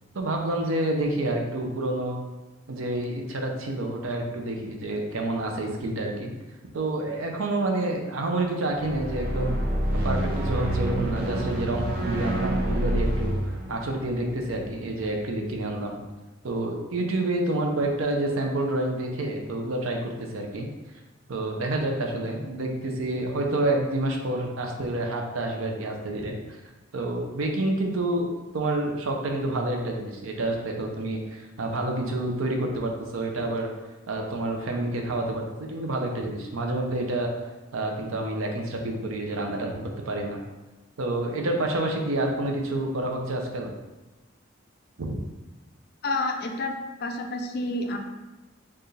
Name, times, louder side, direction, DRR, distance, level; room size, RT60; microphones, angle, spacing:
voice 1, 0.1-2.2 2.7-6.3 6.7-9.6 9.9-13.4 13.7-16.0 16.4-20.7 21.3-26.6 26.9-33.7 34.1-37.3 37.7-40.4 41.0-43.7 45.0-45.2, right 2 dB, 85° right, 2 dB, 0.6 m, -28 dB
sound 1, 8.8-15.1, right 1 dB, 50° right, 0.7 m, -28 dB
voice 2, 46.0-46.7 47.0-48.0, left 2 dB, 50° left, 4 dB, 0.4 m, -29 dB
4.5 x 2.5 x 3.2 m, 1.1 s
head